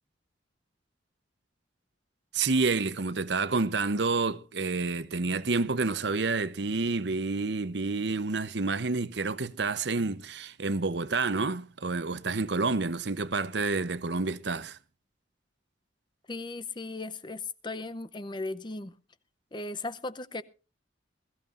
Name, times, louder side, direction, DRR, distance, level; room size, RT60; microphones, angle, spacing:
voice 1, 2.3-14.8, right 3 dB, 65° right, 0.9 m, -29 dB
voice 2, 16.3-19.0 19.5-20.4, left 3 dB, 25° left, 0.6 m, -37 dB
21.5 x 14.5 x 2.5 m
head